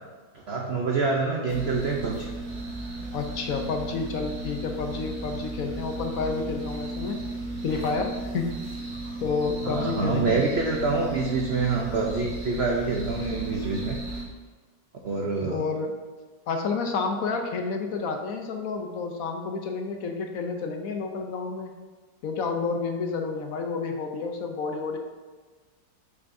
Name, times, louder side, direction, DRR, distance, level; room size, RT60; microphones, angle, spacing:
voice 1, 0.3-2.3 8.9-9.2 9.6-14.0 15.0-15.7, right 4 dB, 70° right, 0 dB, 0.6 m, -26 dB
sound 1, 1.5-14.2, right 2 dB, 40° right, 1.9 m, -35 dB
voice 2, 3.1-7.3 7.6-8.7 9.2-10.4 15.5-15.9 16.5-21.7 22.2-25.0, left 4 dB, 65° left, 4 dB, 0.9 m, -30 dB
8.0 x 5.5 x 2.6 m, 1.4 s
omnidirectional pair, 1.9 m